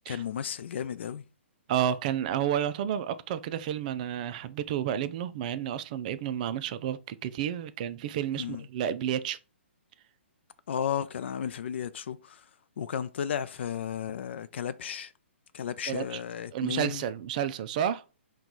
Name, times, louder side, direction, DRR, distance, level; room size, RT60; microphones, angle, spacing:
voice 1, 0.1-1.2 8.3-8.7 10.7-12.4 12.8-15.1 15.5-17.1, left 8 dB, 65° left, 0.4 m, -34 dB
voice 2, 1.7-9.4 15.9-16.2 16.5-18.0, right 10 dB, 40° right, 0.4 m, -31 dB
4.5 x 2.3 x 3.9 m
hypercardioid pair, 145°, 7 cm